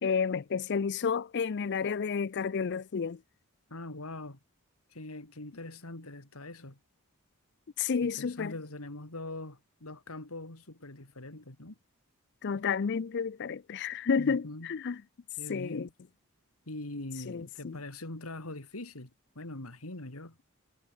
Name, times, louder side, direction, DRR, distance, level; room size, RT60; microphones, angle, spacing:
voice 1, 0.0-3.2 7.8-8.5 12.4-15.0 15.5-15.9 17.3-17.8, left 6 dB, 55° left, 0.5 m, -31 dB
voice 2, 3.7-4.4 4.9-6.8 8.0-11.8 14.2-14.7 15.4-15.9 16.7-19.1 19.3-20.4, left 2 dB, 85° left, 3.1 m, -42 dB
head